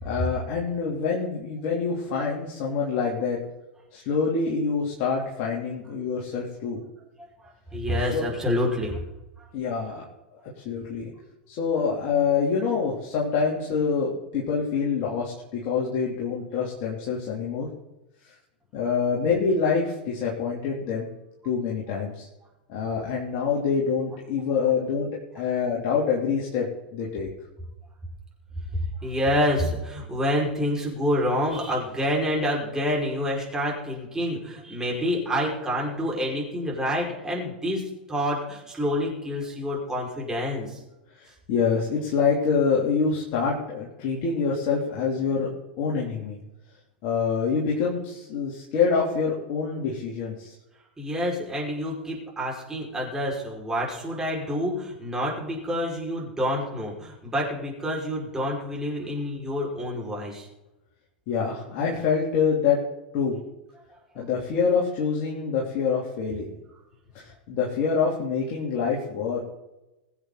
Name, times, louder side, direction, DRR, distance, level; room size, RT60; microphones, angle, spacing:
voice 1, 0.0-3.4 3.9-6.8 8.0-8.2 9.5-10.0 10.4-11.1 11.5-17.7 18.7-21.1 21.4-22.3 22.7-25.1 25.3-27.3 41.2-45.5 45.8-46.4 47.0-50.5 61.3-62.8 63.1-63.4 64.1-66.5 67.1-69.4, left 5 dB, 45° left, -4 dB, 3.3 m, -26 dB
voice 2, 7.4-9.0 9.4-9.5 29.0-40.8 45.3-45.4 51.0-60.5, equal, 10° right, -3 dB, 5.5 m, -28 dB
22.5 x 8.3 x 4.1 m, 0.97 s
figure-of-eight pair, 95°, 5 cm